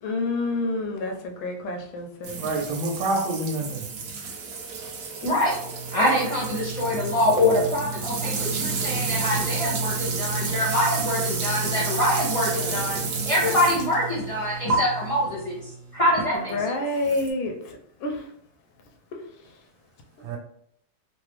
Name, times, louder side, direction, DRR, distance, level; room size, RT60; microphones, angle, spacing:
voice 1, 0.0-2.4 16.3-17.6 18.0-18.3 19.1-19.2, left 2 dB, 85° left, 2 dB, 1.5 m, -28 dB
sound 1, 2.2-14.0 14.7-14.8 17.0-17.3, right 4 dB, 65° right, 1.1 m, -31 dB
voice 2, 2.4-3.8 20.2-20.4, right 2 dB, 80° right, -1 dB, 1.5 m, -27 dB
sound 2, 4.8-16.6, right 3 dB, 40° right, 1.2 m, -34 dB
voice 3, 5.2-5.6 5.9-15.7 15.9-16.6, left 1 dB, 35° left, -5 dB, 0.5 m, -24 dB
3.9 x 2.0 x 3.0 m, 0.69 s
omnidirectional pair, 2.2 m